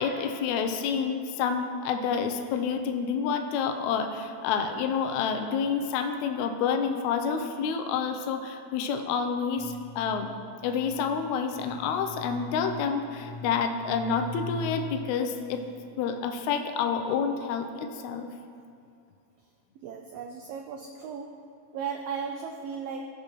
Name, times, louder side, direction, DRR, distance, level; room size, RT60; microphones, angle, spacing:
voice 1, 0.0-10.3 10.6-15.6 16.0-18.3, left 6 dB, 80° left, 5 dB, 1.9 m, -28 dB
sound 1, 9.5-15.5, left 2 dB, 20° left, 1.3 m, -41 dB
voice 2, 19.8-21.3 21.7-23.1, right 6 dB, 85° right, 3 dB, 1.4 m, -36 dB
16.0 x 5.7 x 3.0 m, 2.5 s
omnidirectional pair, 3.4 m